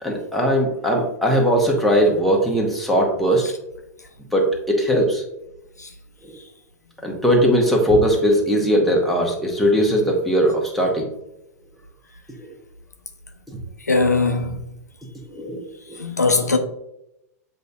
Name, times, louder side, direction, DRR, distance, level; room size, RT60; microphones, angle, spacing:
voice 1, 0.0-3.5 4.3-5.2 6.2-6.3 7.0-11.1 12.4-12.5 15.3-16.0, equal, ahead, 1.1 m, -19 dB
voice 2, 13.8-14.7 15.9-16.6, left 3 dB, 90° left, 0.5 m, -20 dB
7.6 x 2.7 x 2.2 m
figure-of-eight pair, 100°, 9 cm